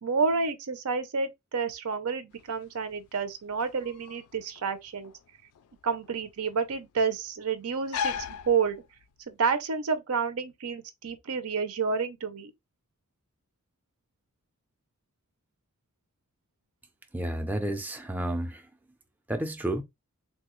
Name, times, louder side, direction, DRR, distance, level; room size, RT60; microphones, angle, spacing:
voice 1, 0.0-5.1 5.8-8.8 9.3-12.5, right 5 dB, 85° right, 0.6 m, -29 dB
sound 1, 2.3-9.3, left 7 dB, 90° left, 0.4 m, -39 dB
voice 2, 17.1-18.6 19.3-19.8, right 1 dB, 10° right, 0.4 m, -31 dB
3.5 x 2.3 x 3.0 m
head